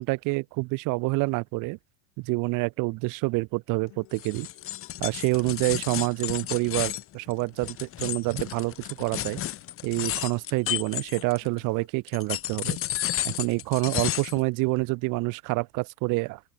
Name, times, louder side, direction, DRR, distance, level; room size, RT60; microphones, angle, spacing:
voice 1, 0.0-1.8 2.2-4.5 5.0-9.4 9.8-12.8 13.2-16.4, right 25 dB, 45° right, 0.7 m, -27 dB
Acoustic guitar, 3.9-11.9, left 32 dB, 60° left, 7.4 m, -58 dB
sound 1, 4.1-11.6 12.1-14.4, left 13 dB, 30° left, 0.9 m, -32 dB
open air
cardioid pair, 150°, 45 cm